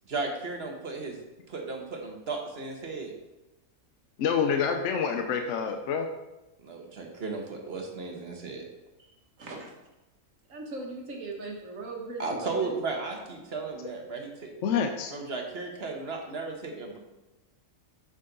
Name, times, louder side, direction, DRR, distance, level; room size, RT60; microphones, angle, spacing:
voice 1, 0.1-1.1 1.5-3.1 6.6-8.7 12.2-14.5 15.1-17.0, right 3 dB, 50° right, 2 dB, 1.3 m, -35 dB
voice 2, 4.2-6.1 14.6-15.1, left 6 dB, 65° left, 6 dB, 0.9 m, -27 dB
voice 3, 9.4-9.7 10.5-12.7, right 3 dB, 70° right, 0 dB, 1.8 m, -39 dB
7.3 x 6.6 x 3.9 m, 1.0 s
omnidirectional pair, 1.5 m